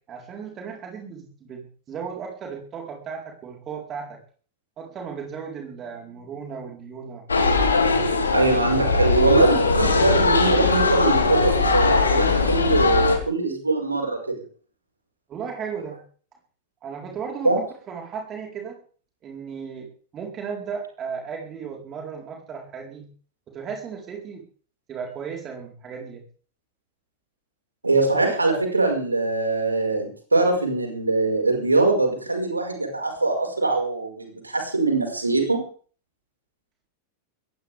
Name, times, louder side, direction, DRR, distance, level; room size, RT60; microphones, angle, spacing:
voice 1, 0.1-4.2 4.8-7.6 15.3-16.0 16.8-18.8 19.2-23.1 23.5-24.4 24.9-26.2, right 6 dB, 30° right, 1 dB, 4.4 m, -35 dB
sound 1, 7.3-13.2, left 4 dB, 75° left, 3.9 m, -20 dB
voice 2, 8.3-14.4 17.4-17.6 27.8-35.6, right 3 dB, 80° right, 2 dB, 5.5 m, -22 dB
21.5 x 18.0 x 3.6 m, 0.43 s
figure-of-eight pair, 90°, 0 cm